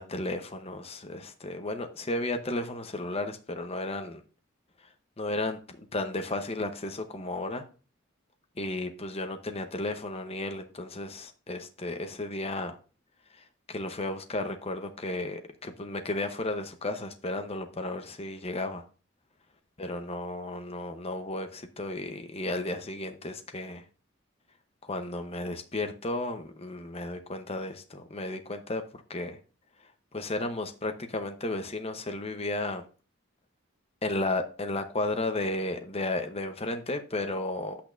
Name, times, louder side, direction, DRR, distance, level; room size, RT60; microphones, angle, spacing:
voice 1, 0.0-4.2 4.8-4.9 5.2-7.6 8.6-12.8 13.3-18.8 19.8-23.8 24.8-28.8 29.1-29.4 30.1-32.8 34.0-37.8, left 2 dB, 30° left, 0.9 m, -33 dB
10.5 x 8.6 x 2.6 m
head